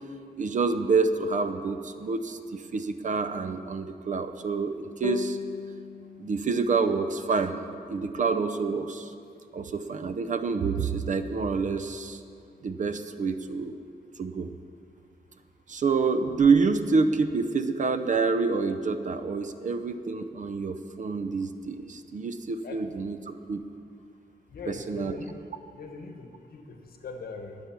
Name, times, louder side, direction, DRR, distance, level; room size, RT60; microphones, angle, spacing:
voice 1, 0.4-5.4 6.2-9.1 9.5-12.2 12.6-13.8 14.2-14.5 15.7-23.2 23.5-23.7 24.7-25.2, right 4 dB, 50° right, 10 dB, 0.6 m, -27 dB
sound 1, 5.0-8.3, left 6 dB, 40° left, 0.4 m, -38 dB
voice 2, 24.5-25.4 25.7-27.6, left 4 dB, 65° left, 4 dB, 1.5 m, -41 dB
21.0 x 7.1 x 6.0 m, 2.4 s
wide cardioid pair, 165°, 17 cm